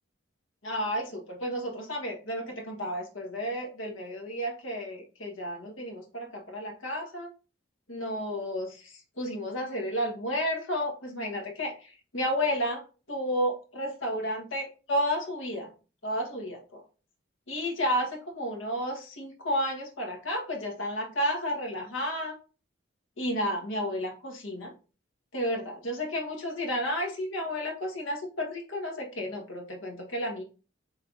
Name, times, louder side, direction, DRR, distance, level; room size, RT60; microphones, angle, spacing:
voice 1, 0.6-7.3 7.9-12.8 13.1-15.7 16.0-16.8 17.5-22.4 23.2-24.7 25.3-30.4, equal, 90° left, 2 dB, 1.3 m, -32 dB
5.3 x 3.3 x 2.5 m, 0.34 s
head